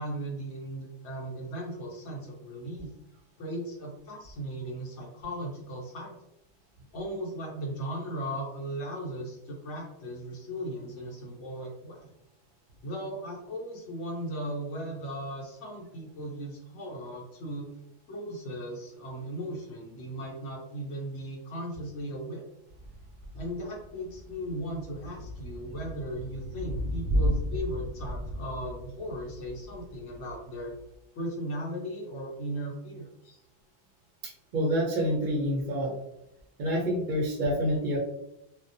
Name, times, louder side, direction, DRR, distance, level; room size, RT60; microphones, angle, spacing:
voice 1, 0.0-2.9 3.4-6.3 6.9-12.1 12.8-17.7 18.1-22.4 23.3-30.7 31.2-33.4, right 1 dB, 80° left, -3 dB, 0.9 m, -37 dB
Thunder / Rain, 22.7-31.0, equal, 80° right, 0.9 m, -34 dB
voice 2, 34.2-35.9 36.6-38.0, equal, 55° right, -2 dB, 0.6 m, -27 dB
2.3 x 2.1 x 2.6 m, 0.83 s
omnidirectional pair, 1.2 m